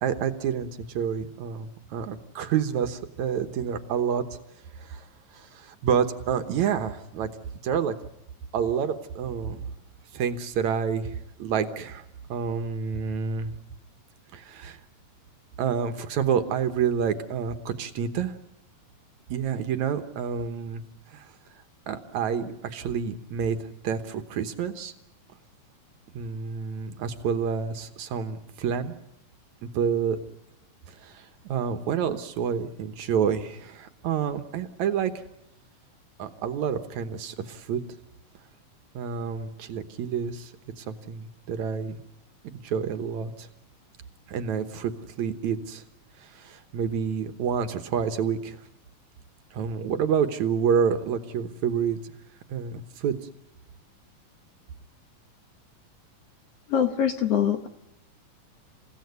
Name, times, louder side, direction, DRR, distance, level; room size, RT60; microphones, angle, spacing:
voice 1, 0.0-4.2 4.8-5.0 5.3-7.3 7.6-7.9 8.5-9.6 10.1-12.0 12.3-13.5 14.3-14.8 15.6-18.3 19.3-20.8 21.1-21.3 21.9-23.6 23.8-24.9 26.2-29.0 29.6-30.2 31.0-35.1 36.2-37.8 38.9-40.5 40.8-42.0 42.6-43.5 44.3-44.9 45.2-45.8 46.2-48.7 49.5-52.0 52.5-53.2, right 7 dB, 65° right, 8 dB, 2.3 m, -28 dB
voice 2, 56.7-57.7, left 9 dB, 60° left, 6 dB, 1.8 m, -23 dB
29.0 x 16.5 x 9.5 m, 0.86 s
omnidirectional pair, 3.8 m